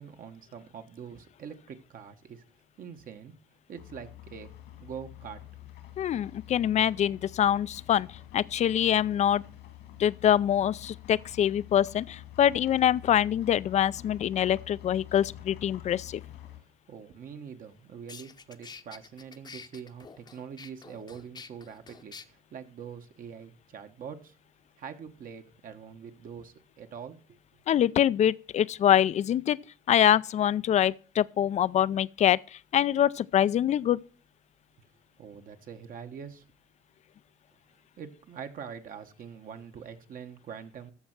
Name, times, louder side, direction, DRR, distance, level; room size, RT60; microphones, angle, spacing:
voice 1, 0.0-2.4 2.8-3.3 3.7-4.5 4.8-5.4 16.9-24.3 24.8-27.4 35.2-36.4 38.0-40.9, right 7 dB, 55° right, 1.3 m, -44 dB
sound 1, 3.8-16.6, left 13 dB, 80° left, 2.3 m, -47 dB
voice 2, 6.0-8.1 8.3-9.4 10.0-16.2 27.7-29.6 29.9-34.0, left 10 dB, 45° left, 0.4 m, -24 dB
sound 2, 17.6-17.7 18.1-22.2, left 5 dB, 25° left, 0.8 m, -47 dB
14.5 x 5.4 x 6.0 m
cardioid pair, 110°, 17 cm